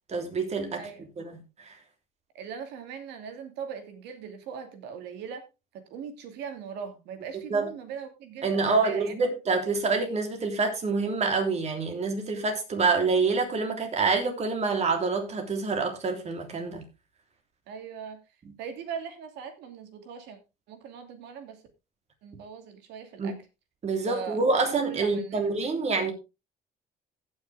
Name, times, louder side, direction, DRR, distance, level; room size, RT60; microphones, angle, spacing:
voice 1, 0.1-0.9 1.2-1.7 7.5-7.7 8.4-16.9 23.2-23.3 23.8-26.1, right 4 dB, 40° right, 3.3 m, -27 dB
voice 2, 2.3-5.5 5.7-9.1 17.7-18.2 18.6-20.4 20.7-21.6 22.2-23.3 24.1-25.8, right 7 dB, 85° right, 2.6 m, -40 dB
16.0 x 6.5 x 3.4 m
cardioid pair, 110°, 17 cm